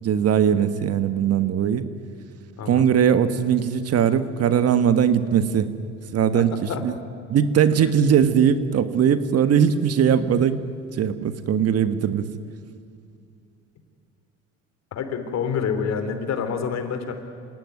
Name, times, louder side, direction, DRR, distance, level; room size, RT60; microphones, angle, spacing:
voice 1, 0.0-1.8 2.7-5.7 6.1-6.9 7.3-10.6 10.9-12.3, right 8 dB, 50° right, 11 dB, 1.6 m, -20 dB
voice 2, 14.9-17.1, left 6 dB, 60° left, 8 dB, 3.4 m, -27 dB
26.5 x 17.5 x 9.5 m, 2.5 s
cardioid pair, 100°, 30 cm